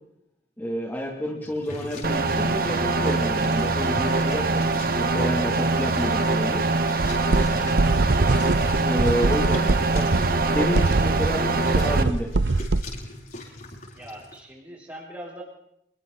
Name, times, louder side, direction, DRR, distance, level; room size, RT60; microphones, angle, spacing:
voice 1, 0.6-6.6 8.8-12.3, equal, 10° left, -2 dB, 2.9 m, -30 dB
sound 1, 1.4-14.4, left 1 dB, 50° left, 7.0 m, -40 dB
sound 2, 2.0-12.0, right 3 dB, 55° right, 1.6 m, -23 dB
sound 3, 7.0-12.8, right 3 dB, 80° right, 0.7 m, -23 dB
voice 2, 8.7-9.0 13.9-15.4, right 1 dB, 15° right, -7 dB, 7.0 m, -41 dB
28.5 x 23.0 x 4.1 m, 0.79 s
head